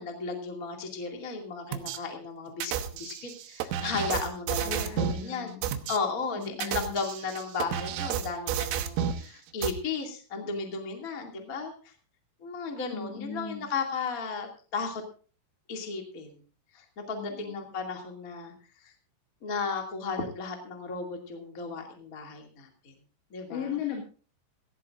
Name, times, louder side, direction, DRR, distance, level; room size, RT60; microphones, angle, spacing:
voice 1, 0.0-5.5 5.9-11.9 12.4-15.0 15.7-16.3 16.7-18.5 18.8-18.9 19.4-22.9 23.3-23.8, left 4 dB, 35° left, 2 dB, 1.3 m, -35 dB
sound 1, 1.7-2.0 2.6-5.2 5.6-6.0 6.5-9.2 9.6-9.7, right 9 dB, 85° right, 3.7 m, -31 dB
voice 2, 4.6-5.7 6.3-7.0 12.9-13.7 17.1-17.7 23.5-24.0, left 7 dB, 65° left, 1 dB, 4.2 m, -37 dB
18.0 x 16.5 x 2.5 m, 0.38 s
omnidirectional pair, 5.7 m